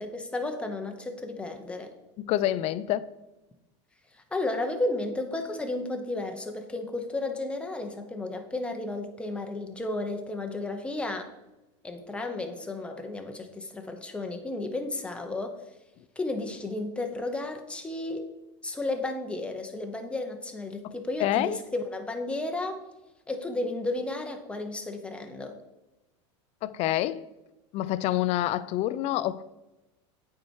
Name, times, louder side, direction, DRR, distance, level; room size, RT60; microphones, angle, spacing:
voice 1, 0.0-1.9 4.3-11.3 11.8-15.5 16.2-18.3 18.6-22.8 23.3-25.6, left 2 dB, 5° left, 0.9 m, -33 dB
voice 2, 2.2-3.1 20.8-21.6 26.6-27.3 27.7-29.4, left 14 dB, 45° left, 0.4 m, -27 dB
8.4 x 4.5 x 4.6 m
supercardioid pair, 130°, 15 cm